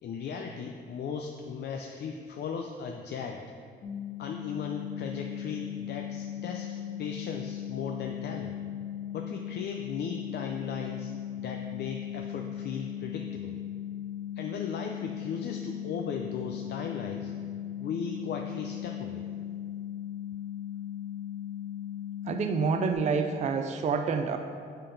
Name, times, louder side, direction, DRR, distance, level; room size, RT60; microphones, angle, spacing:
voice 1, 0.0-3.4 4.2-8.6 9.1-11.1 11.4-13.6 14.4-17.3 17.8-19.3, left 6 dB, 60° left, 2 dB, 0.5 m, -37 dB
sound 1, 3.8-22.9, left 10 dB, 75° left, 1.1 m, -38 dB
voice 2, 22.3-24.4, right 5 dB, 35° right, 6 dB, 0.4 m, -28 dB
6.5 x 3.9 x 5.2 m, 2.2 s
cardioid pair, 90°, 20 cm